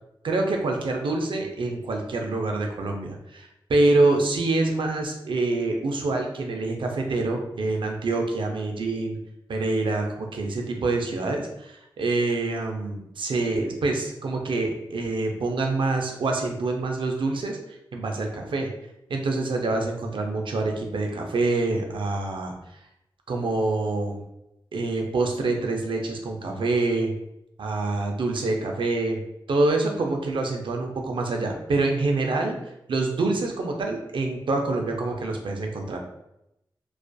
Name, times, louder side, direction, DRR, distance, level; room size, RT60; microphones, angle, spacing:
voice 1, 0.2-9.2 9.5-17.6 17.9-18.7 19.1-22.6 23.3-24.2 24.7-27.1 27.6-29.2 29.5-32.6 32.9-36.0, right 2 dB, 70° right, 2 dB, 0.4 m, -26 dB
2.4 x 2.3 x 2.2 m, 0.84 s
cardioid pair, 45°, 9 cm